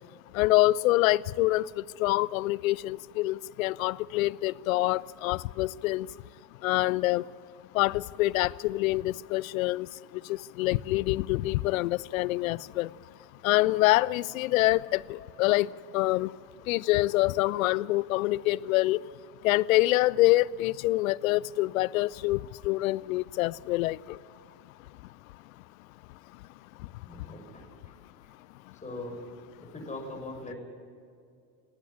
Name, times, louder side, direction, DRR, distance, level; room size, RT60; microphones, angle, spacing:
voice 1, 0.3-1.6 2.0-6.1 6.6-7.2 7.7-9.9 10.3-12.9 13.4-16.3 16.7-19.0 19.4-22.4 22.6-24.0, left 18 dB, 55° left, 0.6 m, -26 dB
voice 2, 27.1-28.0 28.8-29.2 29.6-30.6, left 2 dB, 15° left, 7.0 m, -41 dB
18.5 x 18.5 x 10.0 m
figure-of-eight pair, 70°, 50 cm